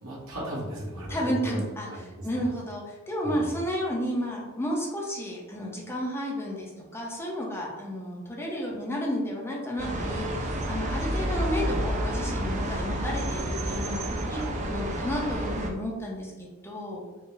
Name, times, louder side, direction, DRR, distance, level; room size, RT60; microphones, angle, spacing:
voice 1, 0.0-2.4 3.2-3.4, right 1 dB, 85° right, -5 dB, 1.1 m, -35 dB
voice 2, 1.1-16.3 16.6-17.0, equal, 10° left, -3 dB, 0.6 m, -32 dB
sound 1, 9.8-15.7, right 1 dB, 35° right, 0.4 m, -30 dB
4.3 x 2.0 x 3.3 m, 1.2 s
head